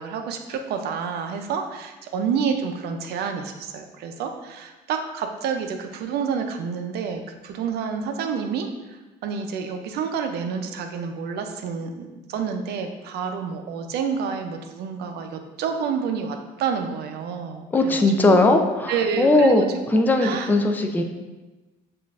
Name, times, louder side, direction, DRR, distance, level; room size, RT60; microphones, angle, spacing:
voice 1, 0.0-18.0 18.3-18.4 18.9-19.7 20.2-20.5, right 6 dB, 70° right, 5 dB, 0.5 m, -29 dB
voice 2, 17.7-19.6 19.9-21.0, left 2 dB, 10° left, 5 dB, 0.4 m, -19 dB
6.5 x 2.5 x 2.4 m, 1.1 s
cardioid pair, 110°, 17 cm